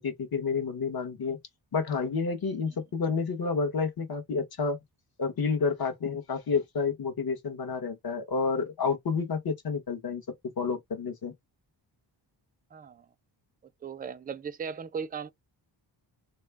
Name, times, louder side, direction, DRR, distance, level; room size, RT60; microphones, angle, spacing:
voice 1, 0.0-1.4 1.7-4.8 5.2-10.2 10.6-11.3, left 5 dB, 50° left, 1.3 m, -30 dB
voice 2, 12.7-13.1 13.8-15.3, right 6 dB, 20° right, 0.4 m, -37 dB
3.1 x 2.1 x 3.4 m
wide cardioid pair, 115°, 45 cm